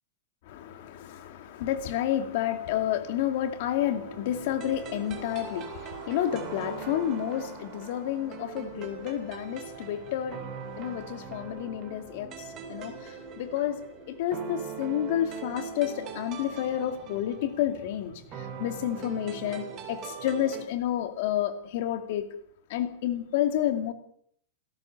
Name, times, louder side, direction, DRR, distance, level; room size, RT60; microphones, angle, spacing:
voice 1, 0.5-13.8 14.1-22.3 22.7-23.9, left 11 dB, 40° left, 8 dB, 2.4 m, -30 dB
sound 1, 3.8-20.7, right 7 dB, 20° right, 3.4 m, -42 dB
28.5 x 17.0 x 6.6 m, 0.64 s
supercardioid pair, 175°, 0 cm